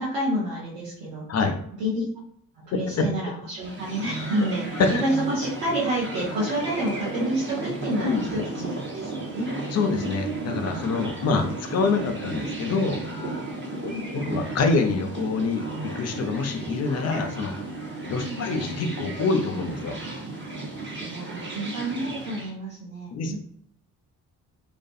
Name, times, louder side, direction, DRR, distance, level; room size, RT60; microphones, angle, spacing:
voice 1, 0.0-1.3 1.8-2.1 2.6-9.5 13.9-14.1 18.2-18.4 21.0-23.4, right 1 dB, 80° right, -7 dB, 0.8 m, -29 dB
voice 2, 2.9-3.3 4.8-5.0 8.0-8.3 9.7-13.1 13.8-17.5 18.1-20.0 23.1-23.4, left 4 dB, 35° left, 5 dB, 0.6 m, -26 dB
sound 1, 3.5-22.5, right 2 dB, 25° right, 1.1 m, -34 dB
2.4 x 2.3 x 2.6 m, 0.65 s
figure-of-eight pair, 40°, 47 cm